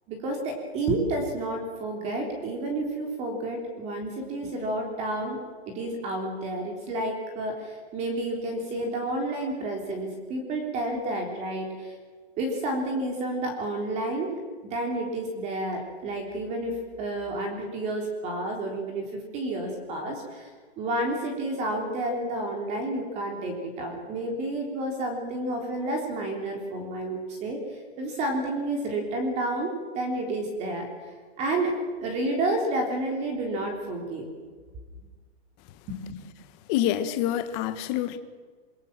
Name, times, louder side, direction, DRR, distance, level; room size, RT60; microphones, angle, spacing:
voice 1, 0.1-5.4 5.7-11.9 12.4-14.4 14.7-20.5 20.8-30.9 31.4-31.7 32.0-34.3 35.9-36.0, right 1 dB, 20° right, 2 dB, 3.5 m, -30 dB
voice 2, 36.7-38.2, left 11 dB, 20° left, 10 dB, 1.3 m, -26 dB
26.5 x 23.0 x 7.5 m, 1.5 s
hypercardioid pair, 175°, 33 cm